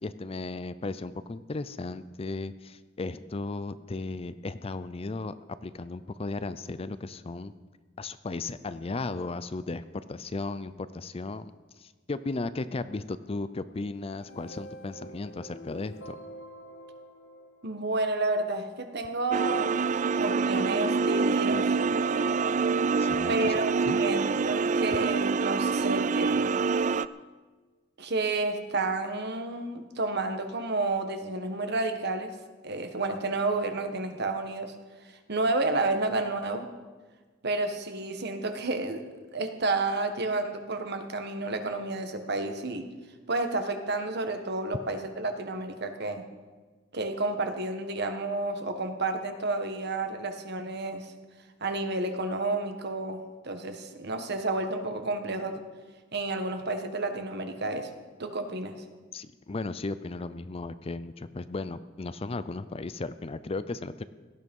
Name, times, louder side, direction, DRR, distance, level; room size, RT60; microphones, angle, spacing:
voice 1, 0.0-5.3 5.6-7.5 8.0-11.5 11.8-16.2 23.0-23.5 23.9-24.0 59.1-64.0, left 3 dB, 30° left, 14 dB, 0.5 m, -35 dB
sound 1, 14.0-18.3, equal, 65° left, 1.7 m, -47 dB
voice 2, 17.6-19.7 20.1-21.8 23.3-26.5 28.0-32.3 32.6-34.7 35.1-36.7 37.4-39.0 39.3-42.9 43.3-46.2 46.9-51.1 51.6-55.6 56.1-57.9 58.2-58.8, right 2 dB, 60° right, 7 dB, 1.5 m, -30 dB
sound 2, 19.3-27.1, right 4 dB, 40° right, 0.4 m, -26 dB
17.5 x 12.5 x 5.4 m, 1.4 s
head